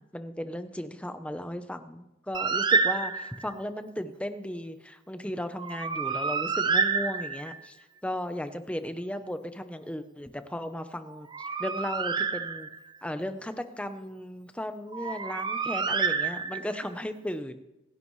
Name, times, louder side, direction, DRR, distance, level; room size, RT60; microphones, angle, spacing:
voice 1, 0.0-7.8 8.0-12.7 13.0-17.6, left 1 dB, 5° left, 9 dB, 0.8 m, -36 dB
Bird, 2.3-3.5 5.6-7.7 11.1-13.0 14.9-16.8, right 4 dB, 20° right, 0.4 m, -28 dB
27.0 x 11.0 x 3.2 m, 0.96 s
head